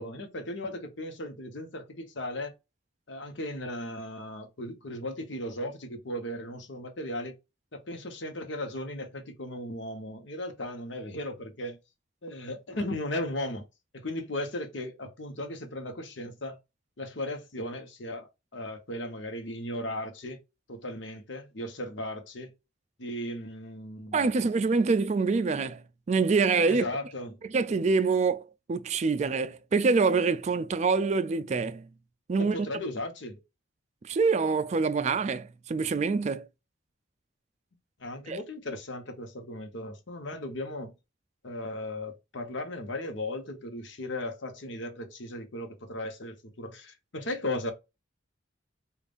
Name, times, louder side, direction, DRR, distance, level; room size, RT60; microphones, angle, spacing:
voice 1, 0.0-2.5 3.1-7.3 7.7-11.8 12.2-13.7 13.9-16.6 17.0-18.3 18.5-20.4 20.7-22.5 23.0-24.3 26.7-27.4 32.4-33.4 38.0-40.9 41.4-47.7, left 1 dB, 70° left, 1.0 m, -36 dB
voice 2, 24.1-26.8 27.5-31.9 32.3-32.7 34.0-36.5 38.3-38.4, right 4 dB, 35° right, 0.3 m, -26 dB
5.2 x 2.5 x 2.4 m
head